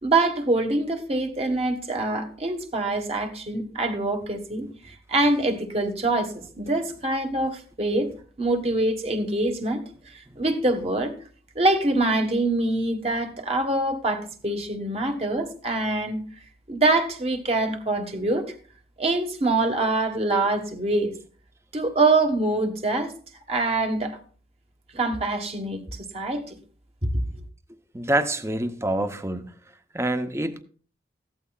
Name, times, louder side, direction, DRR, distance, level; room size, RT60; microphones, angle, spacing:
voice 1, 0.0-8.1 8.4-9.8 10.1-11.1 11.5-16.2 16.7-18.5 19.0-21.1 21.7-23.1 23.5-24.2 24.9-26.5, right 2 dB, 35° right, 1.4 m, -24 dB
voice 2, 27.9-29.5 29.9-30.6, right 1 dB, 15° right, 0.7 m, -26 dB
15.0 x 12.5 x 2.4 m
head